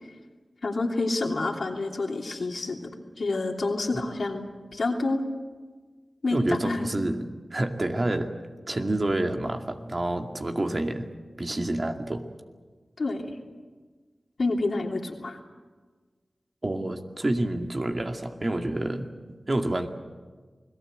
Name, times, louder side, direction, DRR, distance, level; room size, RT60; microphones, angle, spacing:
voice 1, 0.6-4.5 4.7-5.2 6.2-6.8 13.0-13.3 14.4-15.4, left 2 dB, 70° left, 2 dB, 3.0 m, -28 dB
voice 2, 6.3-7.2 7.5-8.3 8.7-11.1 11.4-12.2 16.6-19.9, right 1 dB, 45° right, 4 dB, 2.3 m, -28 dB
28.5 x 18.5 x 8.0 m, 1.4 s
cardioid pair, 45°, 0 cm